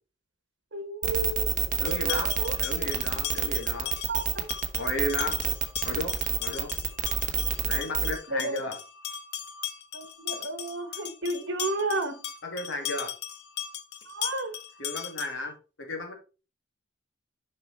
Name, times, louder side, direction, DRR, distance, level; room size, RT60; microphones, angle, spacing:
voice 1, 0.7-1.4 1.8-2.5 4.1-4.5 8.3-8.6 9.9-12.2 14.1-14.5, right 2 dB, 60° right, 8 dB, 1.4 m, -32 dB
sound 1, 1.0-8.2, right 7 dB, 40° right, 1.1 m, -27 dB
voice 2, 1.8-2.3 2.6-3.9 4.7-5.4 5.8-6.1 6.4-6.7 7.6-8.8 12.4-13.1 14.8-16.1, left 2 dB, 80° left, 2 dB, 2.4 m, -33 dB
sound 2, 1.9-15.5, left 10 dB, 55° left, 0.7 m, -38 dB
6.8 x 5.5 x 4.1 m, 0.33 s
head